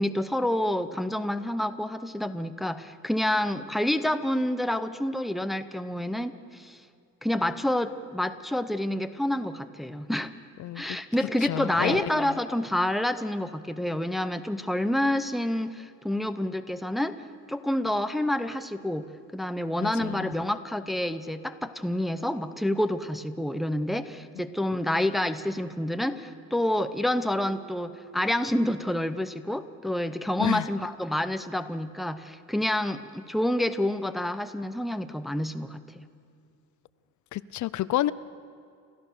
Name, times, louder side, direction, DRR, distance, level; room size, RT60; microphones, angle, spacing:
voice 1, 0.0-6.8 7.2-10.3 10.8-17.2 17.5-19.1 19.3-36.1, left 1 dB, ahead, 10 dB, 0.7 m, -28 dB
voice 2, 10.6-11.0 11.4-12.4 19.8-20.3 24.8-25.0 30.4-30.7 37.3-38.1, left 14 dB, 65° left, 16 dB, 0.6 m, -30 dB
sound 1, 25.8-26.7 26.9-28.6, right 7 dB, 70° right, 4.0 m, -53 dB
28.0 x 14.0 x 6.7 m, 2.4 s
cardioid pair, 145°, 32 cm